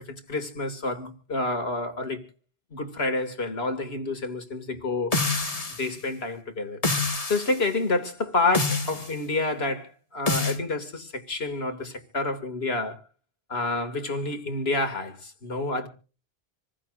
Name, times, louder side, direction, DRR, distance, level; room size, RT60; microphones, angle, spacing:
voice 1, 0.3-2.3 2.7-5.2 5.8-6.8 7.3-13.0 13.5-15.9, left 2 dB, 75° left, 2.5 m, -28 dB
sound 1, 5.1-5.9 6.8-7.5 8.5-9.1 10.3-10.6, left 3 dB, 35° left, 1.7 m, -26 dB
27.0 x 15.0 x 2.5 m
omnidirectional pair, 1.1 m